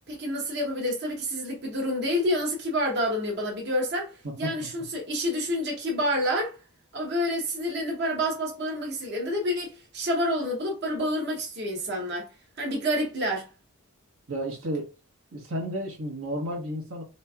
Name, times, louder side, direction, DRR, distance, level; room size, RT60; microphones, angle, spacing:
voice 1, 0.1-6.6 6.9-12.3 12.6-13.5, equal, 50° right, 0.9 m, -28 dB
voice 2, 4.2-4.7 14.3-14.9 15.3-17.0, equal, 75° right, 1.2 m, -32 dB
4.0 x 3.2 x 2.3 m
head